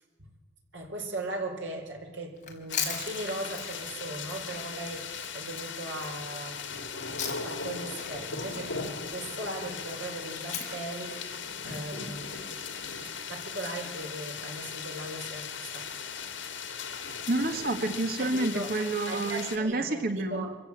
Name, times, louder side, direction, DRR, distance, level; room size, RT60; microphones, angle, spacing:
voice 1, 0.7-6.6 7.2-11.2 11.6-12.6 13.3-15.9 18.2-18.7 19.1-20.6, right 2 dB, 75° right, 2 dB, 4.7 m, -38 dB
Chewing mastication, 2.4-7.7 8.0-12.4, left 7 dB, 40° left, 4.1 m, -40 dB
sound 1, 2.7-19.6, left 6 dB, 75° left, 2.7 m, -38 dB
voice 2, 17.3-20.5, right 2 dB, 55° right, 7 dB, 1.5 m, -29 dB
26.0 x 15.5 x 8.7 m, 1.3 s
head